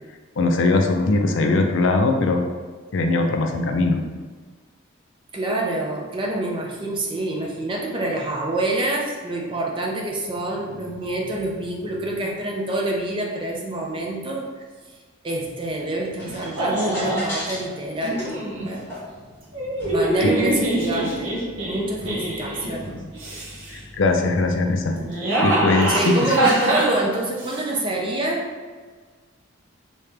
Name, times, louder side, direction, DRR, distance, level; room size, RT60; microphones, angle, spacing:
voice 1, 0.4-2.5 2.9-4.0 20.2-20.3 23.9-26.1, left 3 dB, 65° left, 4 dB, 0.4 m, -20 dB
voice 2, 5.3-14.5 15.2-18.8 19.9-23.0 25.9-28.5, right 1 dB, 25° right, -1 dB, 0.5 m, -26 dB
sound 1, 15.5-26.5, equal, 10° left, 1.4 m, -39 dB
sound 2, 16.6-17.3 18.0-18.7 19.5-22.7 23.1-23.8 24.9-27.6, right 1 dB, 70° right, 0.8 m, -24 dB
3.3 x 2.9 x 3.2 m, 1.5 s
head